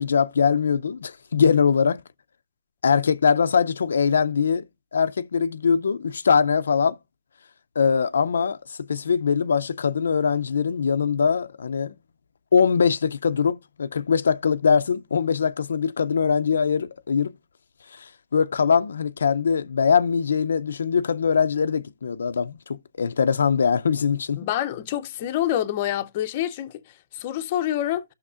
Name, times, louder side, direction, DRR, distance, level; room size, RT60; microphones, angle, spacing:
voice 1, 0.0-2.0 2.8-4.7 4.9-7.0 7.8-11.9 12.5-17.3 17.9-24.5, left 6 dB, 85° left, 0.4 m, -22 dB
voice 2, 24.4-28.0, left 12 dB, 30° left, 0.5 m, -27 dB
14.0 x 6.3 x 2.4 m
hypercardioid pair, 170°, 0 cm